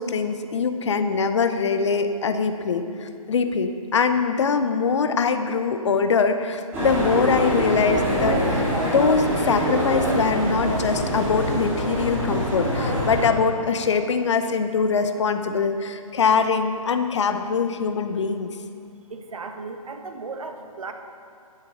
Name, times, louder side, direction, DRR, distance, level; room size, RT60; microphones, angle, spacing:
voice 1, 0.0-18.5, left 5 dB, 50° left, 8 dB, 0.8 m, -23 dB
sound 1, 6.7-13.3, equal, 10° right, 2.4 m, -24 dB
voice 2, 19.1-20.9, right 4 dB, 65° right, 5 dB, 1.2 m, -35 dB
10.5 x 7.7 x 5.6 m, 2.5 s
figure-of-eight pair, 145°, 19 cm